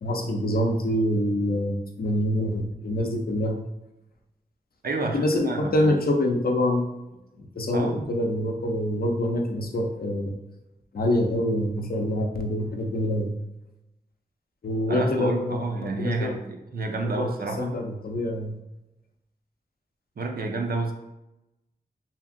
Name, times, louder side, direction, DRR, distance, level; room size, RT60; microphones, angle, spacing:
voice 1, 0.0-3.6 5.1-6.8 7.4-10.4 10.9-13.3 14.6-16.3 17.0-17.3 17.6-18.6, left 1 dB, 60° left, 2 dB, 0.5 m, -26 dB
voice 2, 4.8-5.9 7.7-8.0 14.9-16.4 16.7-17.7 20.2-20.9, right 3 dB, 60° right, 3 dB, 0.5 m, -29 dB
2.8 x 2.5 x 2.5 m, 0.92 s
wide cardioid pair, 75°, 17 cm